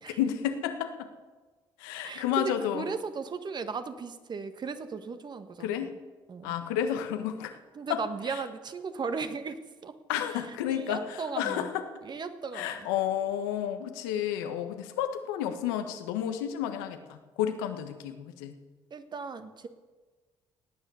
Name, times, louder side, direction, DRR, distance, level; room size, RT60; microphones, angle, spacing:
voice 1, 0.2-1.1 1.8-2.9 5.6-5.9 6.4-7.6 7.9-8.4 10.1-11.9 12.5-18.6, left 10 dB, 90° left, 7 dB, 1.4 m, -31 dB
voice 2, 2.0-5.9 6.3-6.5 7.7-10.0 10.3-10.4 10.7-11.7 12.0-12.9 18.9-19.7, right 5 dB, 40° right, 9 dB, 1.5 m, -37 dB
18.0 x 9.2 x 7.0 m, 1.3 s
supercardioid pair, 70°, 11 cm